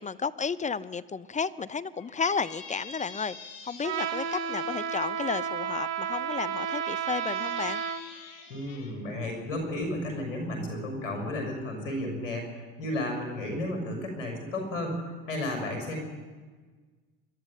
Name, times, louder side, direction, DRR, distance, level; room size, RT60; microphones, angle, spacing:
voice 1, 0.0-3.4 3.6-7.8, left 5 dB, 20° left, 17 dB, 0.6 m, -32 dB
Squeak, 2.0-5.0 5.9-8.9, left 5 dB, 55° left, 4.2 m, -47 dB
Trumpet, 3.8-8.0, right 8 dB, 70° right, 2.2 m, -32 dB
voice 2, 8.5-16.0, left 1 dB, 85° left, 3 dB, 6.2 m, -33 dB
21.0 x 12.5 x 10.0 m, 1.4 s
hypercardioid pair, 85°, 38 cm